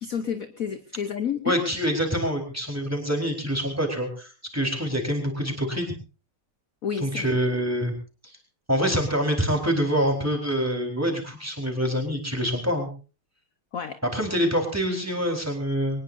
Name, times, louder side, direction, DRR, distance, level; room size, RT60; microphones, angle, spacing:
voice 1, 0.0-1.6 6.8-7.4 13.7-14.0, left 7 dB, 50° left, 9 dB, 1.1 m, -30 dB
voice 2, 1.4-5.9 7.0-7.9 8.2-8.4 8.7-12.9 14.1-16.0, equal, 5° right, 3 dB, 4.3 m, -26 dB
23.5 x 19.5 x 2.7 m, 0.33 s
omnidirectional pair, 2.3 m